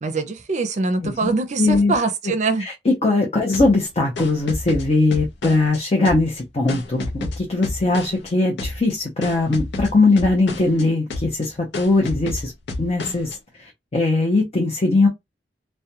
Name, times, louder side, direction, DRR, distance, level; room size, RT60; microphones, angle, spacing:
voice 1, 0.0-2.7, right 3 dB, 45° right, 0.5 m, -23 dB
voice 2, 1.6-1.9 2.6-12.5 12.8-13.3 13.6-15.1, left 2 dB, 35° left, 0.6 m, -20 dB
sound 1, 3.5-5.8 6.0-8.3 8.6-8.9 9.2-10.8 11.1-11.5 11.7-13.3, left 2 dB, 80° left, 0.6 m, -30 dB
2.3 x 2.1 x 2.8 m
head